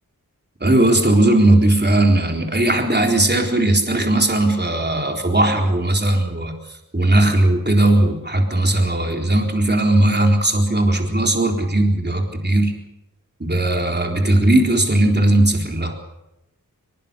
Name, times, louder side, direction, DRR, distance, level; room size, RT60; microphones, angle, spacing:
voice 1, 0.6-12.7 13.4-16.0, right 1 dB, 30° right, 3 dB, 4.0 m, -17 dB
22.5 x 21.5 x 6.9 m, 0.89 s
wide cardioid pair, 45°, 35 cm